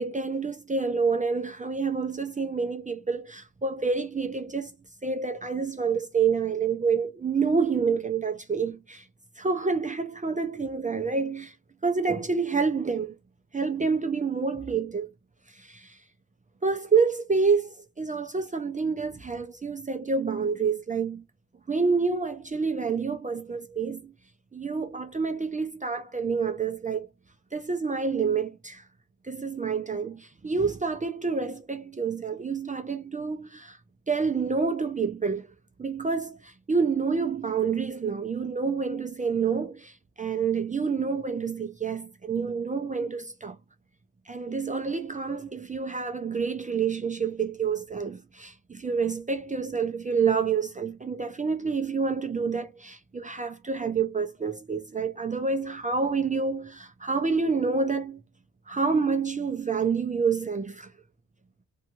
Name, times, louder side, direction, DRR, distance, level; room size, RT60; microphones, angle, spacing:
voice 1, 0.0-4.7 5.0-9.0 9.4-11.5 11.8-13.1 13.5-15.1 15.5-16.0 16.6-21.2 21.7-24.1 24.5-27.1 27.5-28.8 29.2-33.8 34.1-35.5 35.8-43.6 44.3-58.2 58.7-60.9, right 5 dB, 25° right, 0.4 m, -28 dB
2.7 x 2.3 x 2.8 m
wide cardioid pair, 115°, 35 cm